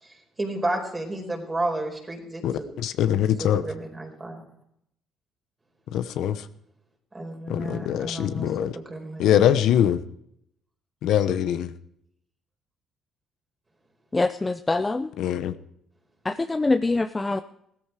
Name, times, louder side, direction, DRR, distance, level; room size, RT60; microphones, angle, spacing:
voice 1, 0.0-2.8 3.4-4.4 7.1-9.3, right 2 dB, 20° right, 3 dB, 4.7 m, -32 dB
voice 2, 2.4-3.6 5.9-6.4 7.5-8.7 9.2-10.0 11.0-11.7 15.2-15.5, left 10 dB, 70° left, 11 dB, 0.9 m, -23 dB
voice 3, 14.1-15.1 16.2-17.4, left 3 dB, 15° left, 9 dB, 0.6 m, -24 dB
17.0 x 14.0 x 4.9 m, 0.74 s
cardioid pair, 120°, 0 cm